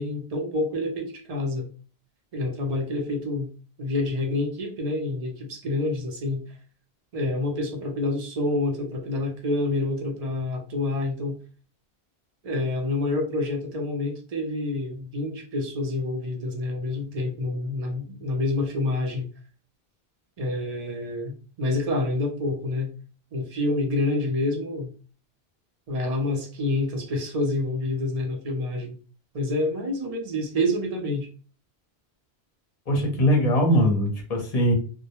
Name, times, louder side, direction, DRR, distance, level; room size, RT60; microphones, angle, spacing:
voice 1, 0.0-1.7 2.3-3.5 3.8-6.4 7.1-11.4 12.4-19.2 20.4-22.9 23.3-24.9 25.9-28.9 29.3-31.3, left 2 dB, 45° right, 3 dB, 0.6 m, -27 dB
voice 2, 32.9-34.7, equal, 40° left, 2 dB, 0.7 m, -21 dB
2.1 x 2.1 x 2.8 m, 0.37 s
omnidirectional pair, 1.1 m